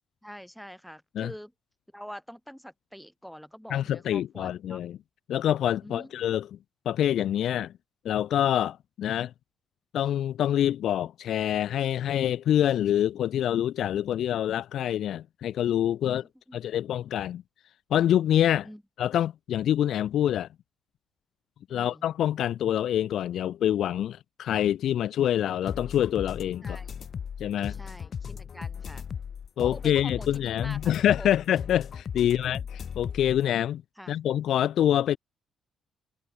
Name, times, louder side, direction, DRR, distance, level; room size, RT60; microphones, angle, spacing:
voice 1, 0.2-1.5 1.9-4.8 5.8-6.1 16.0-16.6 18.6-18.8 21.7-22.1 26.6-26.9 27.7-29.1 29.6-30.8 31.2-31.3 32.2-32.6 34.0-34.2, equal, ahead, 5.8 m, -45 dB
voice 2, 3.7-5.0 5.3-6.5 6.9-7.7 8.0-9.3 9.9-16.2 16.5-17.4 17.9-18.7 19.0-20.5 21.7-26.8 27.4-27.8 29.6-32.6 33.0-33.8 34.1-35.2, left 11 dB, 70° left, 0.4 m, -26 dB
sound 1, 25.7-33.4, left 7 dB, 50° left, 2.2 m, -37 dB
cardioid pair, 90°, 0 cm